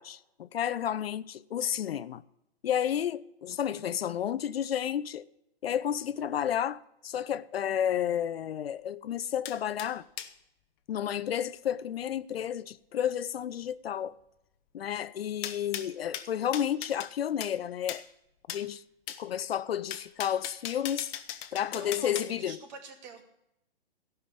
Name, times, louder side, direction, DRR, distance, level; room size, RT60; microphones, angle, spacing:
voice 1, 0.0-2.2 2.6-5.2 5.6-10.0 10.9-14.1 14.7-18.0 18.5-18.8 19.2-21.1 21.5-22.6, left 9 dB, 70° left, 0.6 m, -31 dB
sound 1, 9.4-10.3 15.4-17.1 17.4-17.6 17.9-18.0 18.5-18.7 19.1-19.2 19.9-22.3, left 11 dB, 25° left, 0.8 m, -39 dB
voice 2, 21.7-23.2, right 4 dB, 45° right, 2.6 m, -46 dB
14.0 x 5.9 x 8.4 m
hypercardioid pair, 135°, 31 cm